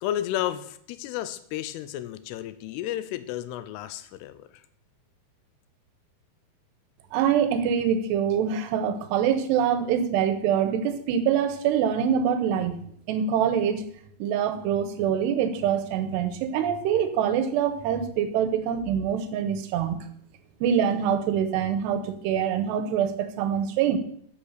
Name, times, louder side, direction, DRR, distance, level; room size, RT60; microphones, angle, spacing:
voice 1, 0.0-4.6, left 12 dB, 85° left, 13 dB, 2.6 m, -32 dB
voice 2, 7.1-12.8 13.1-13.8 14.2-20.0 20.6-24.0, right 8 dB, 90° right, 10 dB, 3.0 m, -25 dB
8.8 x 5.9 x 6.5 m, 0.67 s
omnidirectional pair, 4.7 m